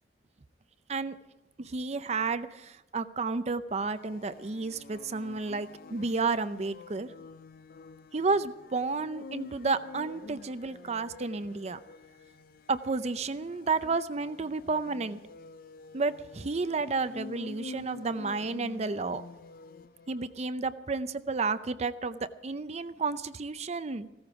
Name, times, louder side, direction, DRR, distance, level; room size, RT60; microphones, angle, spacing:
voice 1, 1.6-7.1 8.1-11.8 12.7-15.2 15.9-19.2 20.1-24.1, right 4 dB, 40° right, 12 dB, 0.5 m, -31 dB
sound 1, 3.8-20.4, left 3 dB, 55° left, 0.4 m, -48 dB
16.5 x 14.0 x 4.9 m, 0.95 s
head